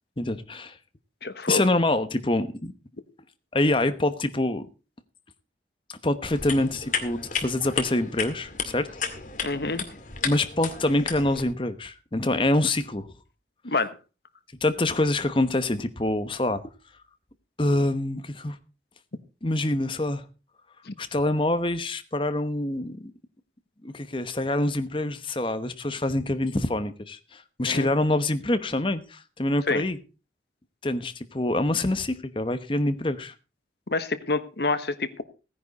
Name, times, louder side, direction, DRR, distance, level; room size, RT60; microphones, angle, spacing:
voice 1, 0.2-0.8 1.5-2.7 3.5-4.7 5.9-8.9 10.2-13.1 14.6-16.6 17.6-18.6 19.4-20.2 21.0-23.1 23.8-30.0 30.8-33.3, left 1 dB, 30° left, 1.0 m, -26 dB
voice 2, 1.2-1.6 9.4-9.9 13.6-13.9 20.8-20.9 27.7-27.9 29.7-29.8 33.9-35.2, left 3 dB, 60° left, 1.2 m, -27 dB
sound 1, 6.2-11.4, left 6 dB, 45° left, 2.1 m, -33 dB
16.0 x 10.0 x 4.1 m
head